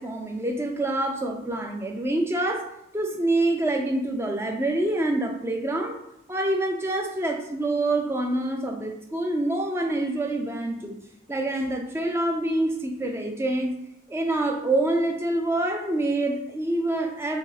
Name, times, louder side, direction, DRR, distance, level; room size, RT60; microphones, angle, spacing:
voice 1, 0.0-6.0 6.3-11.0 11.3-13.8 14.1-17.4, right 1 dB, 10° right, 3 dB, 0.3 m, -26 dB
2.7 x 2.6 x 3.9 m, 0.79 s
head